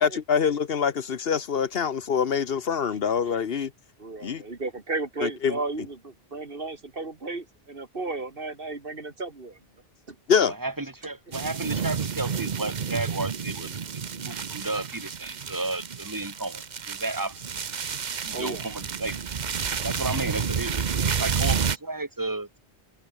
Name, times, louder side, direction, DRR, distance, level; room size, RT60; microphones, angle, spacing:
voice 1, 0.0-3.7 4.2-4.4 5.2-5.6 10.3-10.5, left 7 dB, 70° left, 1.2 m, -25 dB
voice 2, 4.0-9.6 10.1-10.2 18.3-18.6, right 3 dB, 65° right, 2.7 m, -34 dB
voice 3, 10.4-13.8 14.2-17.4 18.2-19.2 19.8-22.6, right 2 dB, 20° right, 1.7 m, -33 dB
sound 1, 11.3-21.8, right 6 dB, 50° right, 1.0 m, -30 dB
omnidirectional pair, 1.0 m